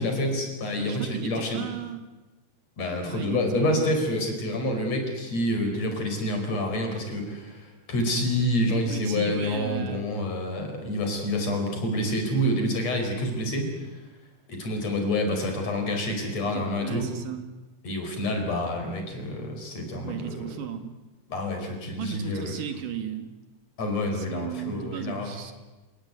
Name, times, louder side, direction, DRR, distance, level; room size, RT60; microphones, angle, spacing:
voice 1, 0.0-1.6 2.8-13.7 14.5-17.1 17.8-20.5 21.3-22.5 23.8-25.3, left 1 dB, 55° left, 3 dB, 6.1 m, -28 dB
voice 2, 0.7-2.0 3.0-3.9 8.4-10.1 16.4-17.5 20.0-21.0 21.9-23.3 24.1-25.5, right 9 dB, 85° right, 7 dB, 3.5 m, -35 dB
28.0 x 18.5 x 9.6 m, 1.1 s
omnidirectional pair, 3.6 m